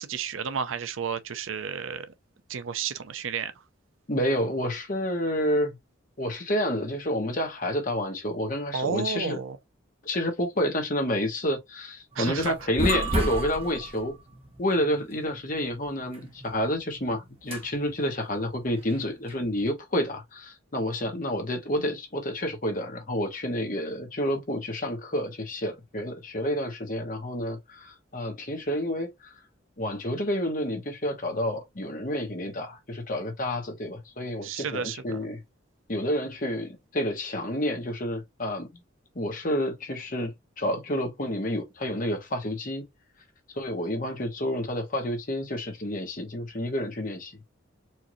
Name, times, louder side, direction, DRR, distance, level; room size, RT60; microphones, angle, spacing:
voice 1, 0.0-2.1 2.5-3.5 8.7-9.6 12.1-12.5 34.4-35.2, right 6 dB, 85° right, 0.6 m, -32 dB
voice 2, 4.1-5.7 6.2-9.4 10.0-14.1 14.6-29.3 29.8-35.4 35.9-38.7 39.1-42.8 43.5-47.3, left 1 dB, 45° left, 1.3 m, -29 dB
sound 1, 12.1-19.6, right 1 dB, 30° right, 1.0 m, -34 dB
4.5 x 2.7 x 3.0 m
head